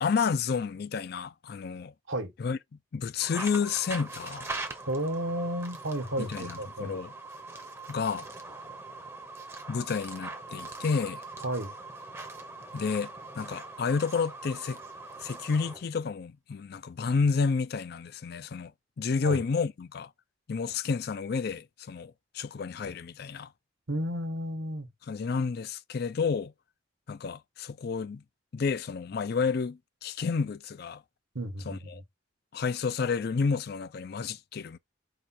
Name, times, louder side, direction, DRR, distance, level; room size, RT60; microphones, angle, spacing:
voice 1, 0.0-1.9 2.4-2.6 2.9-4.5 6.2-7.1 7.9-8.3 9.7-11.2 12.7-13.1 13.4-14.8 15.2-18.7 19.0-20.1 20.5-23.5 25.1-26.5 27.1-28.2 28.5-31.0 31.7-32.0 32.5-34.8, left 5 dB, 50° left, 0.4 m, -30 dB
sound 1, 3.2-15.9, right 3 dB, 10° right, 0.7 m, -42 dB
voice 2, 4.8-7.0 11.4-11.7 19.2-19.4 23.9-24.9 31.3-32.0, right 1 dB, 70° right, 1.1 m, -32 dB
4.8 x 2.3 x 4.2 m
head